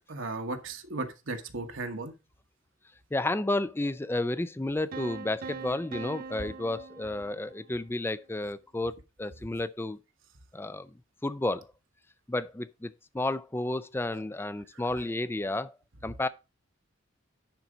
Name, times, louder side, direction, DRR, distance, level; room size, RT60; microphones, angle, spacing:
voice 1, 0.1-2.1 14.7-14.8, right 3 dB, 70° right, 1.2 m, -36 dB
voice 2, 3.1-10.0 10.5-10.9 11.2-11.7 12.3-15.7 16.0-16.3, left 2 dB, 10° left, 0.4 m, -32 dB
sound 1, 4.9-7.8, right 4 dB, 45° right, 0.4 m, -42 dB
10.5 x 4.2 x 4.9 m
head